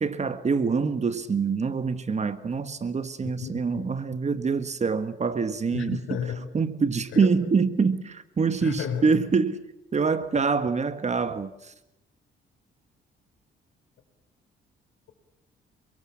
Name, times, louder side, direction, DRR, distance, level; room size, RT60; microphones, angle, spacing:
voice 1, 0.0-6.0 6.5-9.6 9.9-11.7, right 5 dB, 35° right, 1.5 m, -25 dB
voice 2, 3.2-3.9 5.7-6.5 7.1-7.3 8.6-9.1, left 7 dB, 75° left, 4.3 m, -33 dB
28.0 x 22.5 x 7.3 m
cardioid pair, 90°, 20 cm